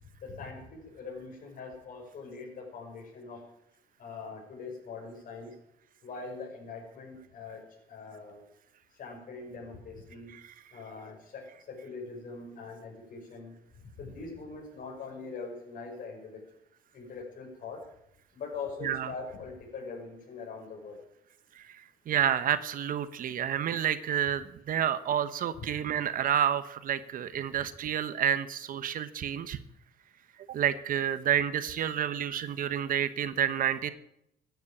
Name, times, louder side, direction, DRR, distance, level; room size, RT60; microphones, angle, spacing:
voice 1, 0.2-3.4 4.0-5.6 6.0-8.4 8.9-10.3 10.7-16.4 16.9-17.8 18.3-21.0, left 4 dB, 55° left, 0 dB, 5.7 m, -42 dB
voice 2, 21.6-29.6 30.5-33.9, right 9 dB, 55° right, 13 dB, 1.1 m, -29 dB
15.0 x 9.5 x 8.6 m, 0.77 s
cardioid pair, 110°, 17 cm